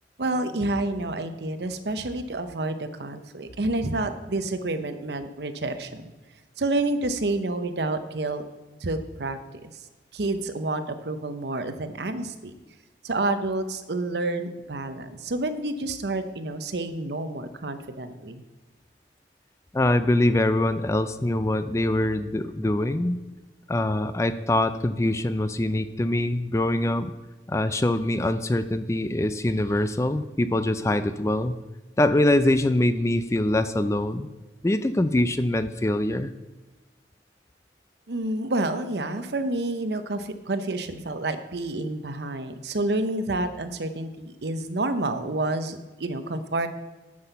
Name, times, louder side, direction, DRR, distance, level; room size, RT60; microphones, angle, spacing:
voice 1, 0.2-6.1 6.6-8.4 8.8-9.7 10.1-12.5 13.0-18.4 38.1-46.7, right 2 dB, 75° right, 10 dB, 0.8 m, -29 dB
voice 2, 19.7-23.2 23.7-27.1 27.5-31.6 32.0-34.3 34.6-36.3, left 1 dB, 15° left, 12 dB, 0.4 m, -23 dB
9.6 x 6.3 x 6.8 m, 1.2 s
head